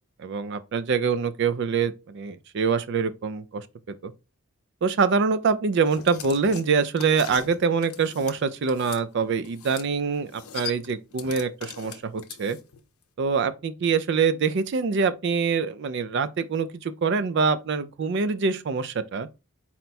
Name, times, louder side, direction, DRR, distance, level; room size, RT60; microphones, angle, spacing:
voice 1, 0.2-3.6 4.0-4.1 4.8-12.6 13.2-19.3, right 5 dB, 50° right, 0.4 m, -25 dB
sound 1, 5.9-9.0 9.4-9.9 10.1-12.8, left 8 dB, 75° left, 0.6 m, -40 dB
4.2 x 2.2 x 4.1 m
head